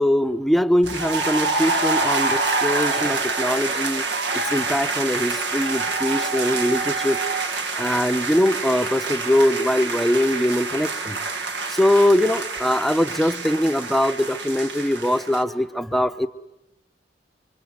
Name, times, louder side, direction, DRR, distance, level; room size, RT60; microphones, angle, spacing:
voice 1, 0.0-4.0 4.5-7.2 7.8-11.2 11.7-16.3, left 1 dB, ahead, 10 dB, 0.9 m, -22 dB
sound 1, 0.8-15.4, right 3 dB, 75° right, 1.9 m, -26 dB
26.5 x 25.5 x 8.1 m, 0.92 s
head